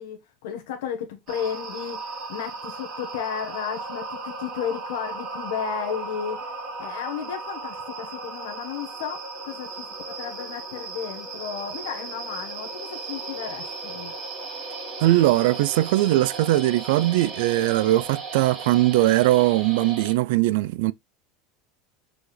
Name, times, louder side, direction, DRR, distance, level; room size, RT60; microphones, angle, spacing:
voice 1, 0.0-6.5 6.8-14.1, left 8 dB, 80° left, 1.4 m, -33 dB
sound 1, 1.3-20.1, right 3 dB, 30° right, 3.2 m, -36 dB
voice 2, 15.0-20.9, right 16 dB, 65° right, 0.4 m, -20 dB
6.1 x 4.8 x 3.3 m
supercardioid pair, 175°, 0 cm